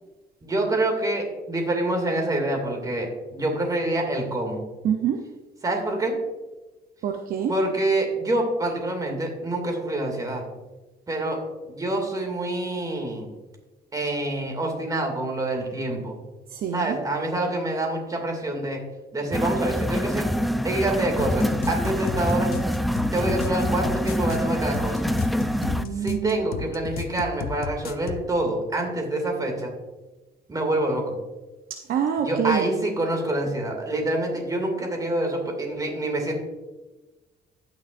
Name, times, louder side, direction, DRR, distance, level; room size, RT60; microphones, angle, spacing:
voice 1, 0.4-4.6 5.6-6.1 7.5-10.4 11.1-11.4 11.6-13.3 13.9-16.2 16.7-18.8 19.1-20.3 20.6-22.5 23.1-25.1 26.0-29.7 30.5-31.1 32.2-36.4, right 1 dB, 20° right, 2 dB, 2.3 m, -26 dB
voice 2, 4.8-5.2 7.0-7.5 16.5-17.0 25.6-26.4 31.7-32.7, right 8 dB, 60° right, 5 dB, 0.7 m, -26 dB
sound 1, 19.3-25.8, equal, ahead, 0.4 m, -25 dB
sound 2, 21.2-28.3, left 8 dB, 65° left, 0.6 m, -34 dB
15.5 x 6.1 x 2.5 m, 1.2 s
cardioid pair, 110°, 17 cm